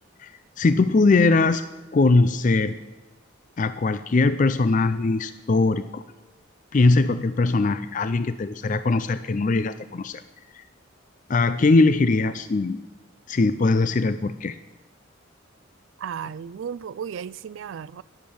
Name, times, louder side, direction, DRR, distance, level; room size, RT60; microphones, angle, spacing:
voice 1, 0.6-1.6 1.9-2.7 3.6-6.0 6.7-10.2 10.5-10.6 11.3-12.8 13.3-14.6, left 3 dB, 40° left, 13 dB, 0.4 m, -21 dB
voice 2, 16.0-18.0, right 7 dB, 75° right, 17 dB, 0.3 m, -34 dB
11.5 x 10.5 x 7.1 m, 1.2 s
head